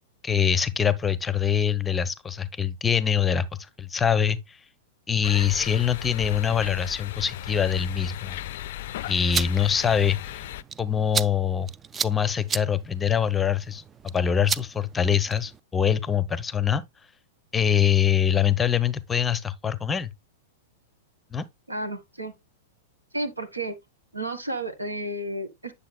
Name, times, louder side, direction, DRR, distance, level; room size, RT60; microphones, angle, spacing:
voice 1, 0.2-4.6 5.1-8.4 9.1-10.4 10.8-11.7 12.0-16.8 17.5-20.1 21.3-21.5, left 8 dB, 15° left, 0.6 m, -24 dB
sound 1, 5.2-10.6, left 13 dB, 55° left, 0.4 m, -36 dB
sound 2, 9.1-15.6, right 6 dB, 20° right, 0.3 m, -34 dB
voice 2, 21.7-22.3 23.1-23.7 24.1-25.7, right 1 dB, 85° right, 1.4 m, -32 dB
9.4 x 6.8 x 2.2 m
figure-of-eight pair, 100°, 0 cm